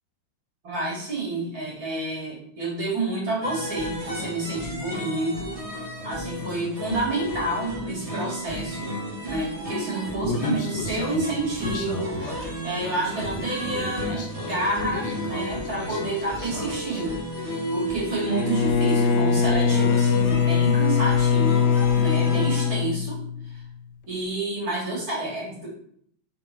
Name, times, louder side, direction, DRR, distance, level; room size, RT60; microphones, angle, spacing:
voice 1, 0.6-5.5 6.0-9.0 9.2-23.6 24.1-25.7, right 2 dB, 40° right, -5 dB, 2.0 m, -29 dB
sound 1, 3.4-22.7, equal, 85° right, 0.6 m, -33 dB
Human voice, 10.2-17.0, left 3 dB, 65° left, 2.7 m, -34 dB
Bowed string instrument, 18.3-23.6, left 6 dB, 85° left, 2.3 m, -21 dB
6.0 x 3.9 x 5.8 m, 0.65 s
omnidirectional pair, 5.0 m